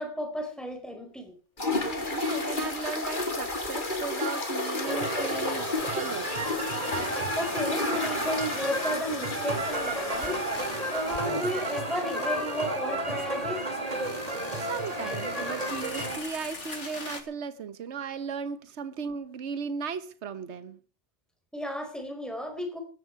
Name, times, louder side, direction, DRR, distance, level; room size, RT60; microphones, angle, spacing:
voice 1, 0.0-1.3 7.4-10.5 10.9-13.7 21.5-22.8, equal, ahead, 4.6 m, -33 dB
sound 1, 1.6-11.2, left 2 dB, 40° left, 2.4 m, -32 dB
voice 2, 1.8-6.3 14.7-20.8, right 5 dB, 70° right, 1.4 m, -36 dB
sound 2, 3.5-3.6 3.9-4.0 5.6-17.2, left 3 dB, 75° left, 3.0 m, -44 dB
sound 3, 4.9-16.2, right 1 dB, 30° right, 2.8 m, -32 dB
17.0 x 14.5 x 4.7 m
omnidirectional pair, 1.2 m